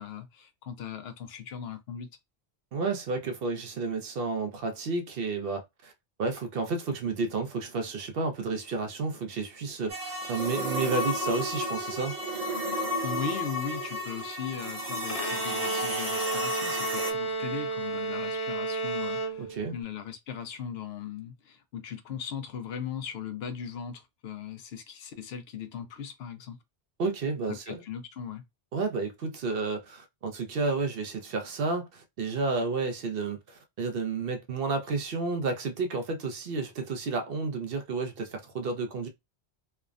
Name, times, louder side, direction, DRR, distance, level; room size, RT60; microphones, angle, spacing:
voice 1, 0.0-2.1 13.0-26.6 27.5-28.4, left 7 dB, 75° left, 0.8 m, -38 dB
voice 2, 2.7-5.9 6.2-12.2 19.4-19.7 27.0-27.8 28.7-39.1, right 3 dB, 65° right, 0.8 m, -31 dB
sound 1, 9.9-17.1, equal, 35° right, 1.0 m, -32 dB
Bowed string instrument, 15.1-19.8, right 3 dB, 55° left, 0.4 m, -32 dB
3.3 x 2.0 x 2.4 m
omnidirectional pair, 1.1 m